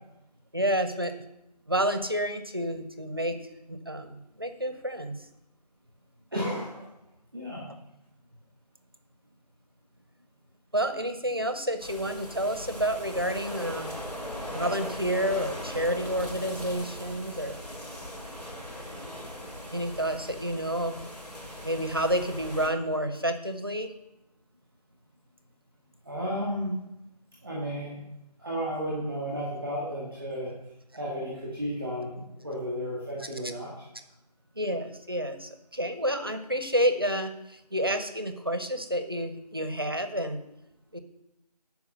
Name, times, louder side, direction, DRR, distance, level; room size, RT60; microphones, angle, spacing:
voice 1, 0.5-1.1 1.7-3.4 3.7-5.2 10.7-13.9 14.5-17.6 19.7-21.0 21.6-23.9 34.6-40.4 40.9-41.0, equal, 35° right, 8 dB, 0.7 m, -29 dB
voice 2, 6.3-6.9 7.3-7.6 26.0-26.7 27.4-28.0 28.4-30.5 30.9-33.7, equal, ahead, -6 dB, 1.3 m, -33 dB
sound 1, 11.8-22.7, equal, 65° left, 3.9 m, -39 dB
11.5 x 4.8 x 6.7 m, 0.88 s
figure-of-eight pair, 170°, 21 cm